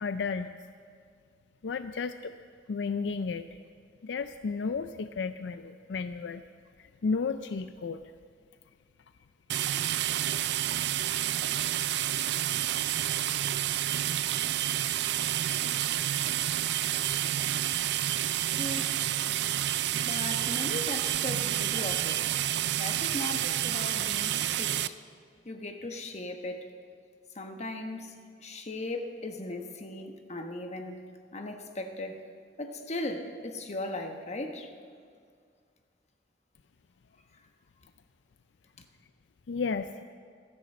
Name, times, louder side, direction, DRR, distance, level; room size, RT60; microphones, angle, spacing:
voice 1, 0.0-0.6 1.6-2.3 2.7-3.4 4.0-6.4 7.0-8.0 39.5-40.0, left 4 dB, 75° left, 10 dB, 0.4 m, -32 dB
sound 1, 9.5-24.9, right 12 dB, 65° right, 0.4 m, -29 dB
voice 2, 18.5-19.0 20.0-22.2 22.8-24.9 25.4-26.7 27.3-28.1 28.4-31.0 31.3-32.2 32.6-34.7, left 2 dB, 40° left, 5 dB, 1.2 m, -37 dB
13.5 x 10.5 x 7.7 m, 2.1 s
head